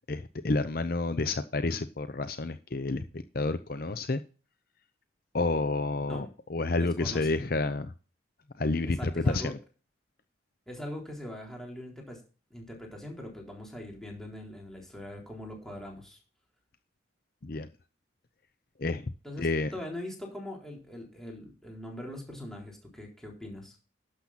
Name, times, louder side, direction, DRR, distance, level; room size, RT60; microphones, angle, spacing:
voice 1, 0.1-4.2 5.3-7.9 8.6-9.6 17.4-17.7 18.8-19.1 19.4-19.7, left 3 dB, 50° left, 11 dB, 0.7 m, -29 dB
voice 2, 6.6-7.3 8.8-9.5 10.7-12.2 12.5-16.2 19.2-23.8, left 1 dB, ahead, -1 dB, 3.8 m, -42 dB
12.0 x 7.6 x 4.2 m, 0.35 s
head